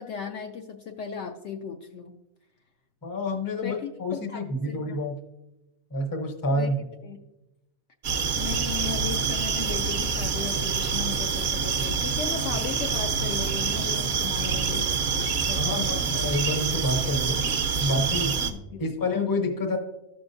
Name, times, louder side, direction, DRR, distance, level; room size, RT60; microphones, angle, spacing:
voice 1, 0.0-2.1 3.6-5.0 6.5-6.7 7.0-7.2 8.4-16.2 18.5-18.9, left 6 dB, 65° left, 4 dB, 0.8 m, -36 dB
voice 2, 3.0-5.2 5.9-6.7 15.6-17.4 17.8-18.3 18.8-19.8, left 1 dB, 20° left, 5 dB, 0.6 m, -28 dB
sound 1, 8.0-18.5, right 5 dB, 55° right, 0.8 m, -26 dB
13.0 x 5.7 x 2.6 m, 0.97 s
omnidirectional pair, 1.5 m